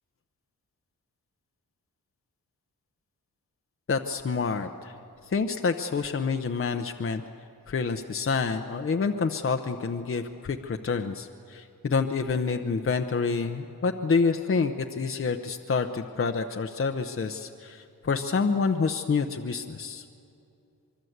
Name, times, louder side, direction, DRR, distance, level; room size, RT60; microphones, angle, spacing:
voice 1, 3.9-4.9 5.3-7.2 7.7-20.0, left 4 dB, 40° left, 5 dB, 0.8 m, -28 dB
24.5 x 23.5 x 8.0 m, 2.6 s
wide cardioid pair, 165°, 35 cm